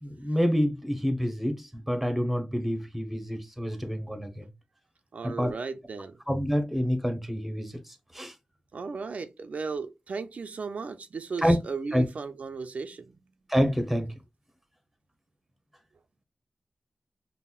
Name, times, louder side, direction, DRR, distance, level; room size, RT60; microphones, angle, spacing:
voice 1, 0.0-4.5 5.2-5.5 6.3-7.7 8.1-8.3 11.4-11.6 11.9-12.0 13.5-14.1, equal, 5° right, 0.8 m, -27 dB
voice 2, 5.1-6.2 8.7-13.1, right 4 dB, 75° right, 0.4 m, -36 dB
5.5 x 2.0 x 2.3 m
wide cardioid pair, 85°, 2 cm